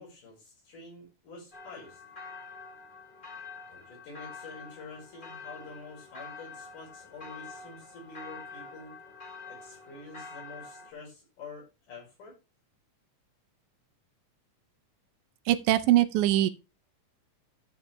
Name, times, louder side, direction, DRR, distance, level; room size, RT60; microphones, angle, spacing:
voice 1, 0.0-2.0 3.7-9.0 9.5-12.4, left 3 dB, 80° left, 6.6 m, -47 dB
sound 1, 1.5-10.9, left 4 dB, 45° left, 0.6 m, -46 dB
voice 2, 15.5-16.5, right 13 dB, 80° right, 2.0 m, -22 dB
11.5 x 7.1 x 3.3 m
omnidirectional pair, 3.6 m